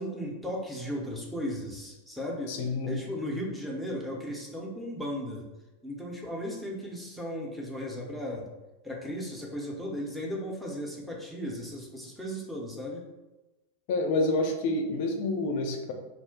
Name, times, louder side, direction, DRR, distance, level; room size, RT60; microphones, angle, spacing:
voice 1, 0.0-2.6 2.9-5.5 5.8-8.5 8.8-13.0, equal, ahead, -3 dB, 0.7 m, -36 dB
voice 2, 2.5-2.9 13.9-15.9, left 2 dB, 45° left, 3 dB, 0.4 m, -28 dB
2.5 x 2.1 x 3.8 m, 1.1 s
figure-of-eight pair, 90°, 0 cm